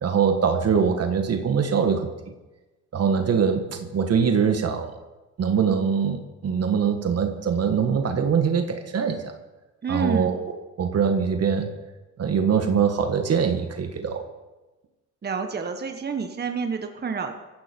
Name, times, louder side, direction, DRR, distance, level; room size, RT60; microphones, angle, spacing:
voice 1, 0.0-2.1 2.9-4.9 5.4-9.2 9.9-10.4 10.8-11.7 12.2-14.2, right 6 dB, 55° right, 5 dB, 1.7 m, -23 dB
voice 2, 9.8-10.3 15.2-17.3, right 5 dB, 35° right, 5 dB, 1.4 m, -28 dB
17.5 x 14.5 x 4.6 m, 1.1 s
cardioid pair, 90°, 30 cm